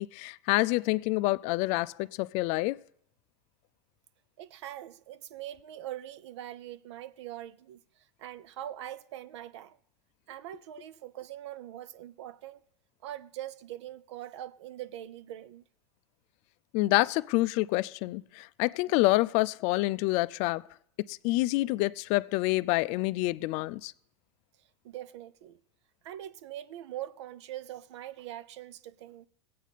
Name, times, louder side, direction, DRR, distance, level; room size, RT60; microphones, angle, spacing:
voice 1, 0.0-2.8 16.7-20.6 21.1-23.9, left 20 dB, 55° left, 0.4 m, -27 dB
voice 2, 4.4-7.8 8.2-9.8 10.3-12.6 13.0-15.6 24.8-25.6 26.0-29.3, right 12 dB, 85° right, 0.6 m, -42 dB
21.0 x 8.4 x 4.1 m
supercardioid pair, 125°, 14 cm